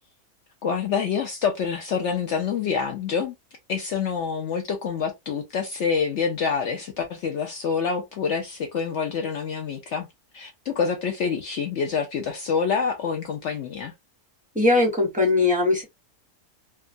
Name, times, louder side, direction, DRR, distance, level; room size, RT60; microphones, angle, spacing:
voice 1, 0.6-3.3 3.7-10.1 10.3-13.9, left 6 dB, 65° left, 0.7 m, -27 dB
voice 2, 14.5-15.8, left 3 dB, 5° right, 0.9 m, -20 dB
2.8 x 2.3 x 2.5 m
omnidirectional pair, 1.6 m